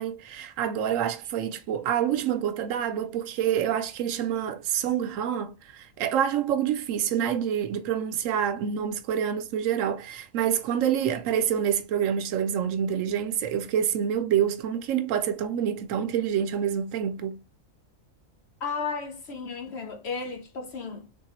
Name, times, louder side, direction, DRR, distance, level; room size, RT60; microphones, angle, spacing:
voice 1, 0.0-17.4, right 9 dB, 70° right, 0.9 m, -27 dB
voice 2, 18.6-21.2, left 5 dB, 60° left, 0.8 m, -34 dB
3.5 x 2.7 x 2.9 m
omnidirectional pair, 1.5 m